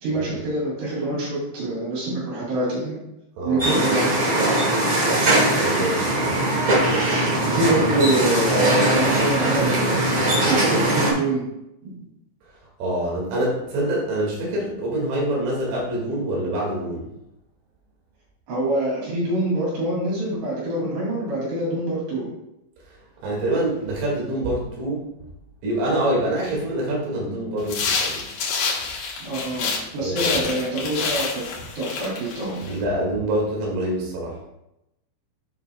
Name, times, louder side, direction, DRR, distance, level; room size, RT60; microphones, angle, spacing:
voice 1, 0.0-3.0 3.4-4.1 7.4-11.4 11.8-12.0 18.5-22.3 29.2-31.4 31.7-32.6, right 1 dB, 60° right, -7 dB, 4.8 m, -25 dB
sound 1, 3.6-11.1, right 1 dB, 45° right, 1.7 m, -20 dB
voice 2, 5.6-6.4 12.8-17.1 23.2-25.1 25.6-28.2 30.0-30.3 32.7-34.4, right 1 dB, 85° right, -3 dB, 4.7 m, -25 dB
sound 2, 27.6-29.9 30.2-32.8, left 4 dB, 65° left, 2.6 m, -27 dB
11.0 x 5.7 x 2.3 m, 0.87 s
omnidirectional pair, 5.5 m